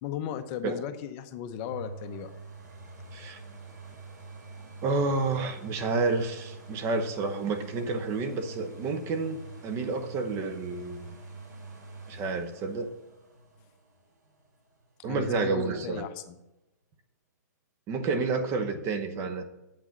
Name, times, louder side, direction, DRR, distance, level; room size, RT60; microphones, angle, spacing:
voice 1, 0.0-2.3 15.0-16.4, left 9 dB, 35° left, 10 dB, 0.7 m, -36 dB
sound 1, 1.7-15.4 15.9-16.0, right 3 dB, 75° right, 3.0 m, -46 dB
voice 2, 4.8-11.1 12.1-12.9 15.0-16.1 17.9-19.4, right 3 dB, 25° right, 8 dB, 1.0 m, -30 dB
8.4 x 6.2 x 7.3 m, 0.96 s
hypercardioid pair, 140°, 10 cm